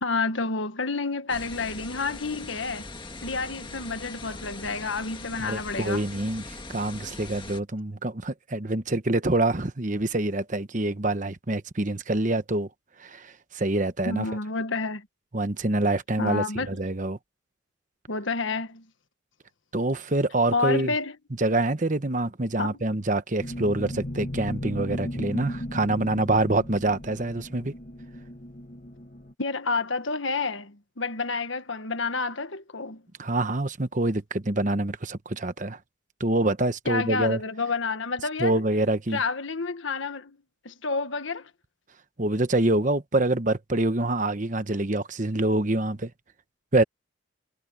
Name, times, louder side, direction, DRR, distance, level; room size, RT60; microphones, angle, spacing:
voice 1, 0.0-2.9 3.2-6.0 14.0-15.1 16.2-16.8 18.1-18.8 20.5-21.2 22.6-22.8 29.4-33.0 36.8-38.6 39.1-40.4 40.6-41.5, left 4 dB, 70° left, 1.5 m, -29 dB
sound 1, 1.3-7.6, left 3 dB, 25° left, 1.7 m, -41 dB
voice 2, 5.4-12.7 13.0-14.3 15.3-17.2 19.7-20.9 21.4-27.7 33.2-35.8 36.2-37.4 38.4-39.2 42.2-46.1 46.7-46.8, right 2 dB, 40° right, 1.1 m, -26 dB
sound 2, 23.4-29.3, left 1 dB, 40° left, 2.1 m, -36 dB
head